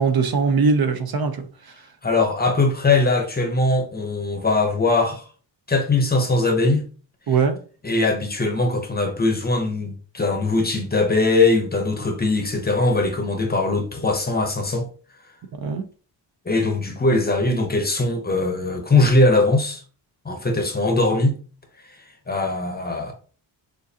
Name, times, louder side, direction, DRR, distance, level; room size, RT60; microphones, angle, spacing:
voice 1, 0.0-1.5 7.3-7.6 15.6-15.8, right 5 dB, 55° right, 0.7 m, -20 dB
voice 2, 2.0-5.2 5.7-6.8 7.8-14.9 16.5-19.8 20.2-21.4 22.3-23.1, left 2 dB, 20° left, 0.7 m, -21 dB
6.6 x 2.5 x 2.7 m
wide cardioid pair, 170°, 44 cm